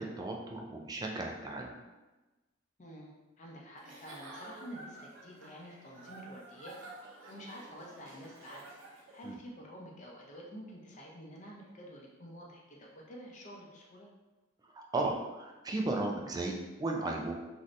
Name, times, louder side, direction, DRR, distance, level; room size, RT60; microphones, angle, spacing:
voice 1, 0.0-1.8 9.2-9.4 14.7-17.3, right 2 dB, 20° right, 0 dB, 0.3 m, -35 dB
voice 2, 2.8-6.8 7.0-8.6 9.1-14.1, equal, 40° left, -2 dB, 0.6 m, -49 dB
Giggle / Chuckle chortle, 3.8-9.3, right 2 dB, 70° right, 0.6 m, -51 dB
3.2 x 2.6 x 2.5 m, 1.1 s
head